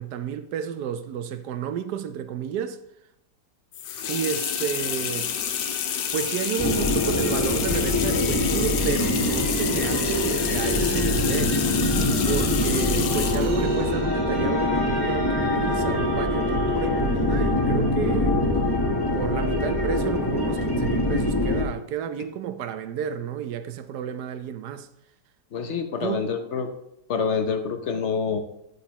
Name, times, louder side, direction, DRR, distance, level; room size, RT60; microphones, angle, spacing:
voice 1, 0.0-2.8 4.1-5.3 6.1-11.7 12.2-18.4 19.1-24.9 26.0-26.2, right 8 dB, 70° right, 1.1 m, -31 dB
sound 1, 3.7-13.5, left 10 dB, 85° left, 1.3 m, -29 dB
sound 2, 3.8-17.7, right 2 dB, 40° right, 2.2 m, -39 dB
sound 3, 6.6-21.6, left 1 dB, 20° left, 0.7 m, -24 dB
voice 2, 25.5-26.7 27.1-28.4, left 5 dB, 55° left, 0.9 m, -26 dB
9.4 x 8.7 x 2.9 m
omnidirectional pair, 1.9 m